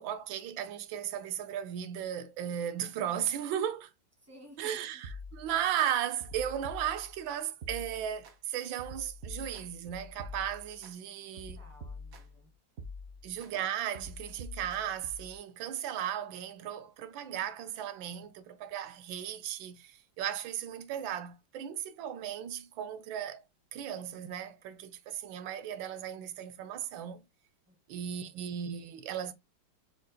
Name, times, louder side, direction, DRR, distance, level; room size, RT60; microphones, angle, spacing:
voice 1, 0.0-3.9 4.6-11.6 13.2-23.4 23.7-27.2 27.9-29.3, right 10 dB, 85° right, 1.4 m, -36 dB
voice 2, 4.2-4.8 11.3-12.5 27.7-27.8 28.1-28.4, equal, 10° right, 1.6 m, -56 dB
sound 1, 5.0-5.8 6.2-7.3 7.6-8.4 8.8-10.9 11.4-12.4 12.8-13.5 13.9-15.4, left 1 dB, 55° right, 1.4 m, -46 dB
5.1 x 4.2 x 2.2 m
omnidirectional pair, 2.1 m